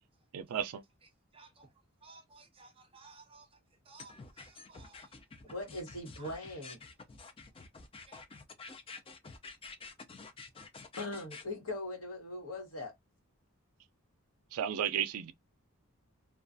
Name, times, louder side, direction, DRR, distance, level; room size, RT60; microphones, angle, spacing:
voice 1, 0.3-0.8 14.5-15.3, right 9 dB, 85° right, 0.4 m, -33 dB
voice 2, 1.3-1.7 2.0-3.5 3.9-5.1 6.2-6.3 8.1-8.2, right 4 dB, 25° right, 0.6 m, -57 dB
sound 1, 4.0-11.4, left 4 dB, 25° left, 0.4 m, -49 dB
voice 3, 5.5-6.8 11.0-12.9, left 2 dB, 70° left, 1.2 m, -40 dB
2.3 x 2.3 x 2.5 m
head